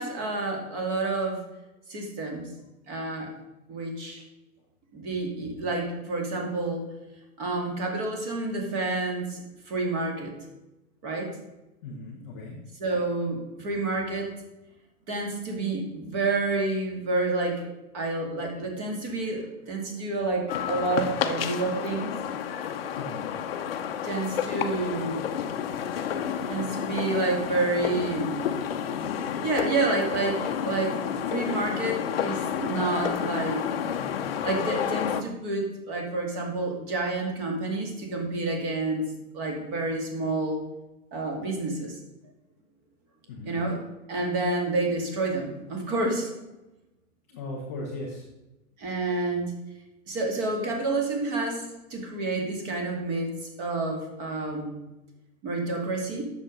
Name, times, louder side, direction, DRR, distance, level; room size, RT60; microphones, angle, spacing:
voice 1, 0.0-1.4 1.9-2.5 2.9-3.3 3.7-4.2 4.9-6.9 7.4-10.3 11.0-11.3 12.8-14.3 15.1-17.6 17.9-22.1 24.0-25.3 26.5-28.4 29.4-31.0 31.3-33.6 34.2-40.6 41.1-41.9 43.4-43.8 44.1-46.3 48.8-49.5 50.1-54.8 55.4-56.2, right 2 dB, 30° right, 1 dB, 2.3 m, -29 dB
voice 2, 11.8-12.6 22.9-23.4 43.3-43.6 47.3-48.2, left 2 dB, 10° left, -3 dB, 0.5 m, -38 dB
sound 1, 20.5-35.2, left 8 dB, 40° left, 0.8 m, -30 dB
8.6 x 7.0 x 6.2 m, 1.0 s
hypercardioid pair, 160°, 44 cm